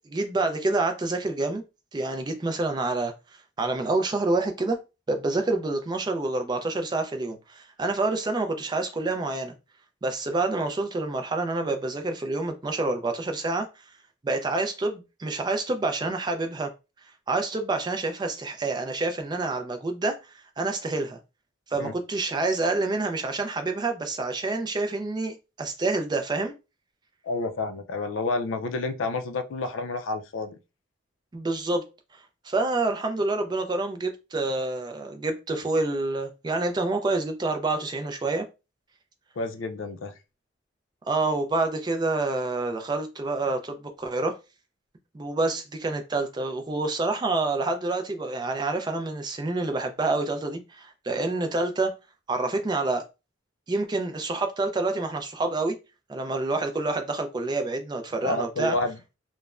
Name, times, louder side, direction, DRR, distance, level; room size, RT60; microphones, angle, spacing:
voice 1, 0.1-1.6 1.9-3.1 3.6-4.8 5.1-9.5 10.0-13.7 14.2-16.7 17.3-21.2 21.7-26.5 31.3-31.9 32.1-38.5 41.1-44.3 45.1-51.9 52.3-53.1 53.7-55.7 56.1-58.8, right 2 dB, 20° right, 0.3 m, -27 dB
voice 2, 27.2-30.6 39.4-40.1 58.2-59.0, left 3 dB, 80° left, 0.4 m, -29 dB
3.0 x 2.1 x 2.3 m
head